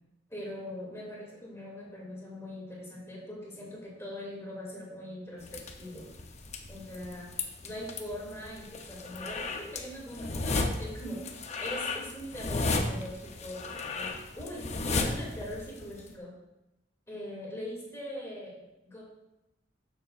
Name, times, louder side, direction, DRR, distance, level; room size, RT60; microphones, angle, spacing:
voice 1, 0.3-6.1 6.7-7.3 7.6-11.3 11.6-16.4 17.1-18.5 18.8-19.0, equal, 15° left, -3 dB, 2.5 m, -41 dB
sound 1, 5.4-16.1, left 3 dB, 40° left, 0.7 m, -34 dB
12.5 x 7.0 x 2.5 m, 0.93 s
head